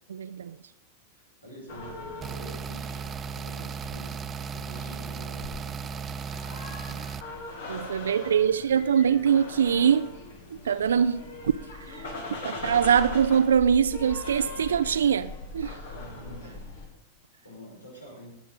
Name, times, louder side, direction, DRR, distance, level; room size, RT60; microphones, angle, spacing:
voice 1, 0.1-0.6 7.7-10.1 10.6-11.5 11.8-12.1 12.4-15.7, right 8 dB, 65° right, 0.4 m, -23 dB
voice 2, 1.1-2.9 3.3-4.2 4.5-7.1 7.5-8.6 15.9-16.7 17.4-18.3, equal, 80° left, 4.6 m, -48 dB
sound 1, 1.7-16.9, left 2 dB, 55° left, 2.7 m, -40 dB
sound 2, 2.2-7.2, right 6 dB, 20° right, 0.6 m, -36 dB
20.0 x 7.2 x 5.4 m
figure-of-eight pair, 90°, 0 cm